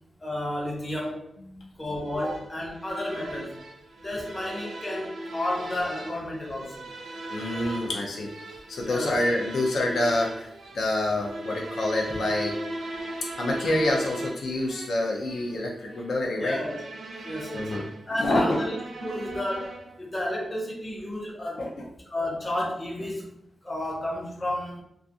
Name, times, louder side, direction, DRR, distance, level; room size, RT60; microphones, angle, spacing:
voice 1, 0.2-1.2 1.8-3.6 4.0-6.9 8.8-9.2 12.1-12.2 16.4-16.8 17.2-17.8 18.1-21.7 22.1-24.8, left 1 dB, 20° left, -3 dB, 0.6 m, -32 dB
sound 1, 2.1-20.1, right 1 dB, 75° right, 0.4 m, -39 dB
voice 2, 7.3-8.3 8.7-10.5 10.7-12.5 13.4-16.6 17.5-17.8 18.1-18.6 21.6-21.9, left 1 dB, 75° left, -1 dB, 0.5 m, -27 dB
2.4 x 2.4 x 2.7 m, 0.76 s
wide cardioid pair, 175°, 0 cm